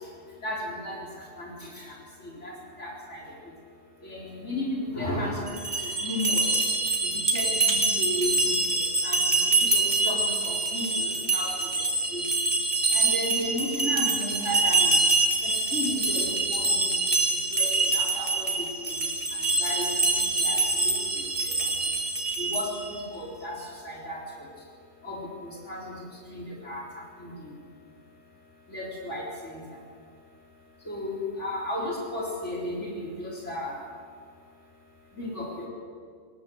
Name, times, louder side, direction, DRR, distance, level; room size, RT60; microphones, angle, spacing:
voice 1, 0.4-1.0 1.4-2.0 2.4-2.5 2.8-3.2 4.0-6.6 7.0-8.5 9.0-11.5 12.1-12.2 12.9-15.0 15.4-16.8 17.5-19.0 19.6-19.9 20.1-21.3 22.4-24.2 25.0-26.0 26.3-26.8 27.2-27.5 28.7-29.2 29.5-29.6 30.9-33.8 35.2-35.7, left 1 dB, 75° left, -3 dB, 4.4 m, -34 dB
sound 1, 5.5-22.9, right 2 dB, 40° right, 2.4 m, -25 dB
20.5 x 19.0 x 8.0 m, 2.1 s
omnidirectional pair, 1.2 m